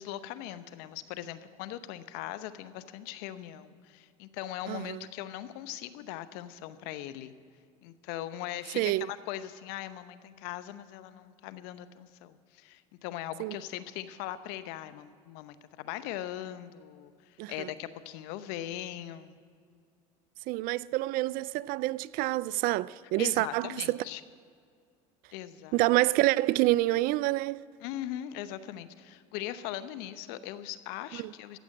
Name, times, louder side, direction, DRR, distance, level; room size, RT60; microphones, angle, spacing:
voice 1, 0.0-7.3 7.8-19.4 23.2-24.2 25.3-25.8 27.8-31.6, left 13 dB, 75° left, 0.8 m, -40 dB
voice 2, 4.7-5.1 8.8-9.1 13.4-13.5 17.4-17.7 20.5-24.0 25.7-27.6 31.1-31.3, right 18 dB, 60° right, 0.4 m, -27 dB
14.5 x 7.7 x 8.6 m
supercardioid pair, 95°, 17 cm